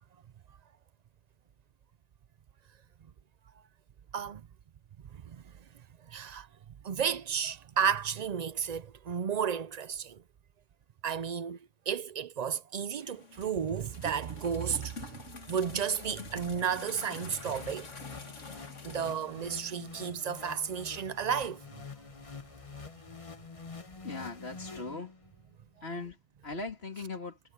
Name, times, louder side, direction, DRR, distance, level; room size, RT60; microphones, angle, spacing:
voice 1, 5.1-5.4 6.1-6.5 6.8-10.2 11.0-11.6 11.9-15.1 15.5-17.9 18.8-21.6, right 7 dB, 55° right, 0.4 m, -32 dB
sound 1, 13.0-20.1, left 3 dB, 85° left, 2.5 m, -47 dB
sound 2, 17.2-25.4, left 4 dB, 30° left, 1.2 m, -47 dB
voice 2, 24.0-25.1 25.8-26.2 26.4-27.4, left 3 dB, 55° left, 2.8 m, -39 dB
omnidirectional pair, 1.2 m